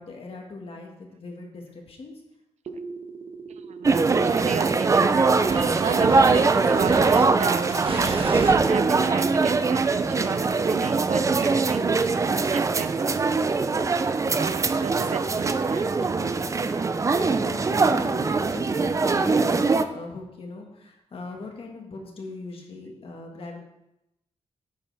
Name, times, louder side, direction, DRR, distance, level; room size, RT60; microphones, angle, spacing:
voice 1, 0.0-2.1 17.1-23.6, left 3 dB, 55° left, 1 dB, 1.7 m, -40 dB
sound 1, 2.7-8.6, right 4 dB, 55° right, 1.1 m, -32 dB
voice 2, 3.5-8.0 8.6-12.0 12.5-13.3 14.4-16.1, right 8 dB, 80° right, 12 dB, 0.5 m, -35 dB
sound 2, 3.8-19.8, right 4 dB, 25° right, 0.4 m, -22 dB
9.8 x 7.0 x 3.4 m, 0.86 s
wide cardioid pair, 140°, 11 cm